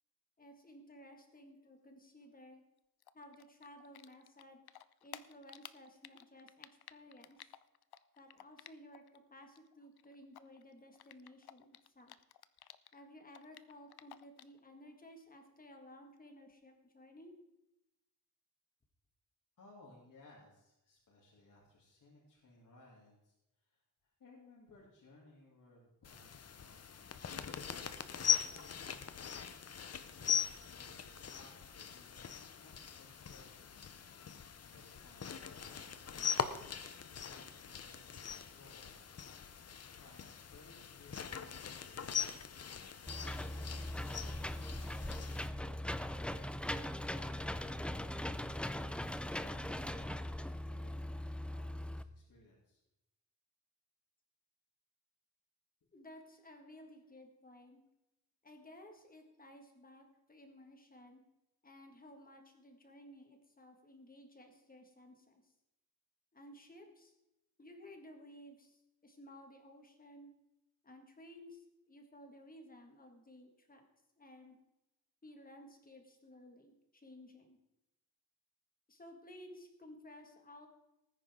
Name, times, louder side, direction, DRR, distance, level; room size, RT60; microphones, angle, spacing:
voice 1, 0.4-2.6 3.1-4.6 5.0-7.5 8.2-12.1 12.9-17.3 55.9-57.8 58.4-61.2 61.6-65.5 66.3-67.1 67.6-70.3 70.8-73.9 74.2-74.6 75.2-77.6 78.9-80.7, left 1 dB, 25° left, 4 dB, 1.9 m, -56 dB
Typing, 3.0-9.2 9.4-13.0 13.3-14.6, left 12 dB, 85° left, 0.6 m, -54 dB
voice 2, 19.6-29.4 30.1-33.8 34.7-36.0 36.4-39.0 40.0-45.9 50.6-52.8 55.8-55.9, left 2 dB, 60° left, -6 dB, 3.0 m, -63 dB
sound 1, 26.0-45.5, left 8 dB, 45° left, 0.7 m, -41 dB
Engine / Mechanisms, 43.1-52.0, left 1 dB, 5° left, 0.3 m, -40 dB
19.0 x 9.7 x 3.7 m, 0.91 s
wide cardioid pair, 170°, 37 cm